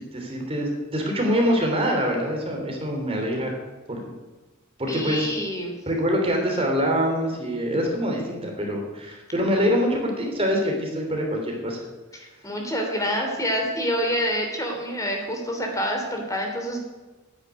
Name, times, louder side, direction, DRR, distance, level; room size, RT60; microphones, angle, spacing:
voice 1, 0.1-3.5 3.9-4.0 4.8-5.3 5.9-11.8, equal, 30° right, 1 dB, 3.3 m, -24 dB
voice 2, 4.9-5.8 12.1-16.8, equal, 15° left, 2 dB, 3.3 m, -27 dB
10.5 x 10.5 x 9.2 m, 1.2 s
head